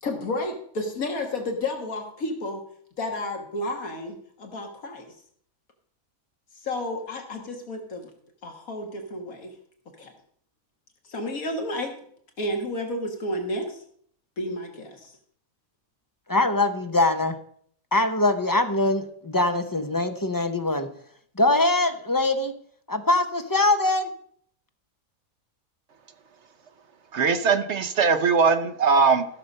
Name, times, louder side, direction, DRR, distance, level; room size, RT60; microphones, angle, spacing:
voice 1, 0.0-2.6 3.0-5.1 6.6-8.1 8.4-9.5 10.0-10.1 11.1-11.9 12.4-13.8 14.4-15.1, left 1 dB, 75° left, 3 dB, 2.1 m, -31 dB
voice 2, 16.3-17.3 17.9-20.9 21.4-22.5 22.9-24.1, left 2 dB, 20° left, 7 dB, 0.7 m, -22 dB
voice 3, 27.1-29.3, right 5 dB, 55° right, 9 dB, 1.1 m, -20 dB
15.0 x 6.7 x 5.4 m, 0.63 s
omnidirectional pair, 1.5 m